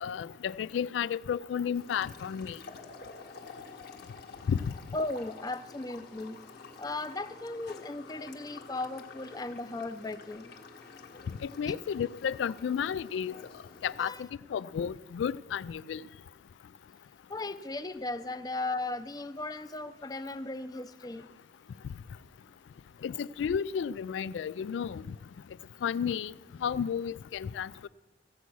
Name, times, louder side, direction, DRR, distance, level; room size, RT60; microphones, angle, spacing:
voice 1, 0.0-2.6 4.5-4.7 11.4-13.3 13.8-16.0 23.0-25.0 25.8-26.3 26.6-27.7, left 7 dB, 90° left, 0.3 m, -32 dB
sound 1, 1.7-14.1, left 4 dB, 60° left, 1.4 m, -50 dB
voice 2, 4.9-6.4 6.8-10.5 11.7-11.8 14.0-14.2 17.3-21.3, left 2 dB, 20° left, 0.5 m, -36 dB
15.0 x 8.2 x 6.1 m
head